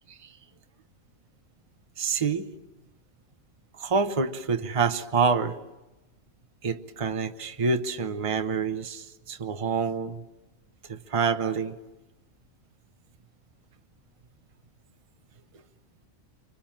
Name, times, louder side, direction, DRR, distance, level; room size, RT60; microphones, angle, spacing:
voice 1, 2.0-2.5 3.7-5.6 6.6-10.2 10.9-11.7, right 5 dB, 25° right, 8 dB, 0.9 m, -27 dB
29.5 x 24.5 x 7.4 m, 1.0 s
omnidirectional pair, 1.4 m